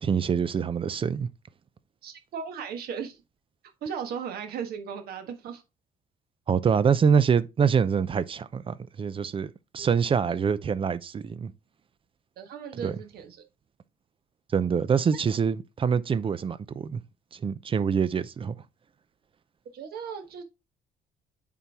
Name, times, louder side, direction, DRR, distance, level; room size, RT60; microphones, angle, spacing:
voice 1, 0.0-1.3 6.5-11.5 12.8-12.9 14.5-17.0 17.3-18.6, right 6 dB, 30° right, 0.6 m, -25 dB
voice 2, 2.0-3.2 3.8-5.6 9.8-9.9 12.4-13.4 19.7-20.4, right 7 dB, 65° right, 1.6 m, -36 dB
7.1 x 4.5 x 3.5 m
cardioid pair, 110°, 17 cm